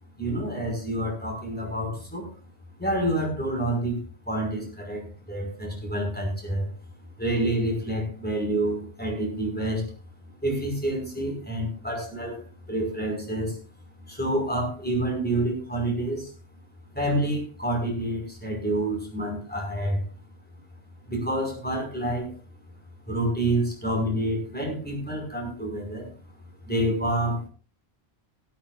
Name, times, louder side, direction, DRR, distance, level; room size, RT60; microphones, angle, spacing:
voice 1, 0.2-2.3 2.8-5.0 5.3-6.7 7.2-9.8 10.4-12.4 12.7-13.6 14.1-16.3 16.9-20.1 21.1-22.3 23.1-26.1 26.7-27.5, right 1 dB, 10° left, 0 dB, 5.5 m, -28 dB
17.5 x 14.5 x 2.5 m, 0.35 s
omnidirectional pair, 1.1 m